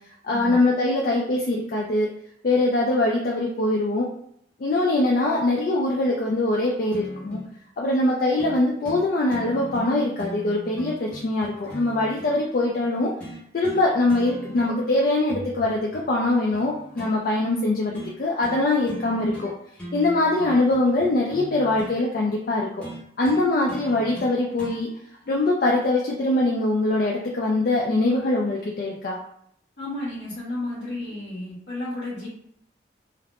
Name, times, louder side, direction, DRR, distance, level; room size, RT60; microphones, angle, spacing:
voice 1, 0.2-2.1 2.4-4.1 4.6-7.4 7.8-13.1 13.5-17.9 18.2-19.5 19.9-22.9 23.2-24.9 25.3-29.2, left 2 dB, 50° left, -2 dB, 0.4 m, -23 dB
sound 1, 6.9-7.5 8.4-8.6 8.8-9.0 9.3-12.4 13.2-13.8 14.1-14.9 15.3-17.2 17.9-18.1 18.4-18.6 18.9-19.5 19.8-22.0 22.8-24.8 25.8-25.9, equal, 5° left, 0.7 m, -38 dB
voice 2, 29.8-32.3, left 1 dB, 85° left, -9 dB, 1.1 m, -32 dB
3.2 x 2.0 x 2.5 m, 0.71 s
head